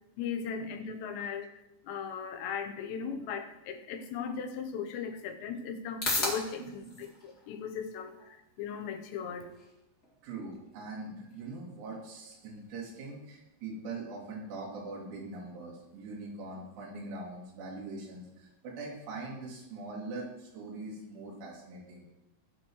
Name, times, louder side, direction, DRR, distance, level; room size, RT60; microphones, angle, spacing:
voice 1, 0.2-1.5 1.8-9.5, left 6 dB, 75° left, 6 dB, 3.0 m, -38 dB
sound 1, 5.4-21.5, left 2 dB, 30° left, 2.0 m, -44 dB
voice 2, 6.6-7.0 10.2-22.1, right 3 dB, 85° right, -4 dB, 5.2 m, -42 dB
21.0 x 7.2 x 3.2 m, 0.94 s
omnidirectional pair, 5.3 m